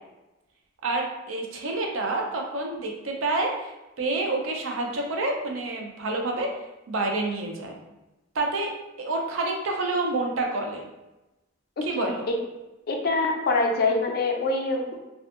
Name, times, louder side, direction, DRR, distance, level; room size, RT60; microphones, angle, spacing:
voice 1, 0.8-6.5 6.9-7.8 8.3-8.7 9.0-10.8 11.8-12.3, right 2 dB, 75° right, 1 dB, 0.5 m, -28 dB
voice 2, 11.8-12.1 12.9-15.0, left 3 dB, 50° left, 2 dB, 0.4 m, -25 dB
2.6 x 2.4 x 2.4 m, 1.0 s
head